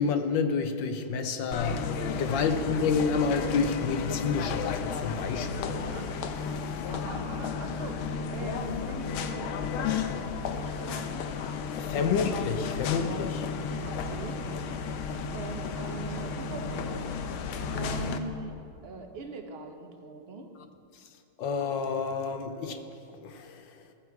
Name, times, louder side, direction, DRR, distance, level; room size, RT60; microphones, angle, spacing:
voice 1, 0.0-5.8 11.8-13.5 21.4-22.9 23.2-23.6, left 5 dB, 70° left, 7 dB, 1.3 m, -29 dB
sound 1, 1.5-18.2, left 5 dB, 85° left, 1.5 m, -33 dB
voice 2, 2.1-2.5 5.6-6.1 6.6-8.0 8.3-11.3 13.8-14.4 15.3-17.3 17.5-20.5, right 3 dB, 80° right, 4 dB, 0.5 m, -42 dB
15.5 x 7.8 x 4.6 m, 2.5 s
omnidirectional pair, 2.3 m